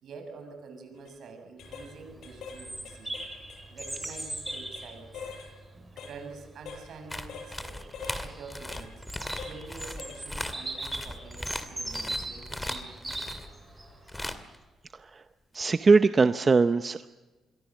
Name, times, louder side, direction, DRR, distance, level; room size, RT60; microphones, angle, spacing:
voice 1, 0.0-3.2 3.7-5.3 6.0-7.9 8.2-9.0 9.4-13.4, right 4 dB, 70° right, 6 dB, 6.6 m, -47 dB
sound 1, 0.9-1.1 1.6-1.9 2.2-2.6 2.8-4.9 5.1-5.5 6.0-6.1 6.7-6.8 7.3-7.5 7.9-8.2 8.7-8.8 9.4-9.6 10.0-10.2 10.6-10.8, left 5 dB, 80° left, 7.6 m, -43 dB
Bird vocalization bird call bird song, 1.6-14.3, right 1 dB, 15° right, 7.5 m, -40 dB
sound 2, 7.1-13.5 14.1-14.6 15.6-15.7, left 1 dB, 10° left, 2.4 m, -38 dB
voice 2, 15.5-17.1, right 4 dB, 35° right, 10 dB, 0.7 m, -21 dB
27.5 x 23.0 x 7.3 m, 1.2 s
cardioid pair, 100°, 0 cm